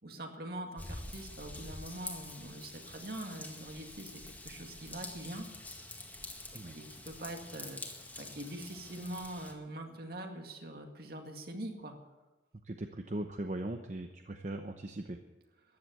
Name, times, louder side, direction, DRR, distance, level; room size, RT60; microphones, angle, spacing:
voice 1, 0.0-5.5 6.7-7.8 8.2-12.0, right 1 dB, 60° right, 4 dB, 2.1 m, -43 dB
Raindrop / Vehicle horn car horn honking / Trickle dribble, 0.8-9.5, left 2 dB, 10° left, 2.0 m, -47 dB
voice 2, 12.6-15.2, right 1 dB, 45° right, 6 dB, 0.8 m, -39 dB
14.0 x 11.0 x 8.0 m, 1.1 s
head